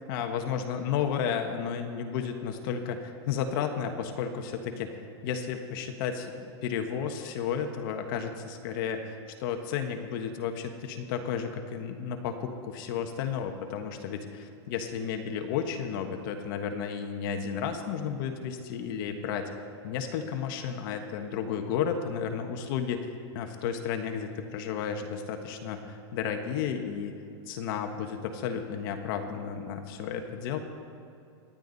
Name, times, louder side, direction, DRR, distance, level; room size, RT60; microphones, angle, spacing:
voice 1, 0.1-19.5 19.8-27.1 27.5-30.6, left 7 dB, 50° left, 5 dB, 1.3 m, -33 dB
25.5 x 10.5 x 4.1 m, 2.6 s
supercardioid pair, 160°, 15 cm